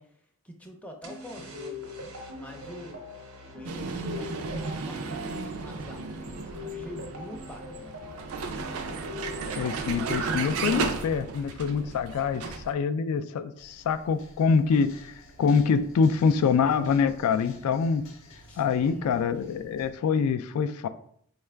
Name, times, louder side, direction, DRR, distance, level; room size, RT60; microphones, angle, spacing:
voice 1, 0.0-1.9 2.3-3.1 3.5-8.1 11.8-12.4 18.5-19.2, equal, 5° left, 2 dB, 0.4 m, -46 dB
sound 1, 1.0-9.8, left 2 dB, 90° right, 1.0 m, -42 dB
Vehicle, 3.6-12.7, right 4 dB, 70° right, 0.4 m, -34 dB
voice 2, 9.6-18.1 18.6-20.9, left 5 dB, 90° left, 14 dB, 0.3 m, -25 dB
sound 2, 13.6-19.9, left 1 dB, 65° left, 0.7 m, -53 dB
4.5 x 2.4 x 3.2 m, 0.64 s
head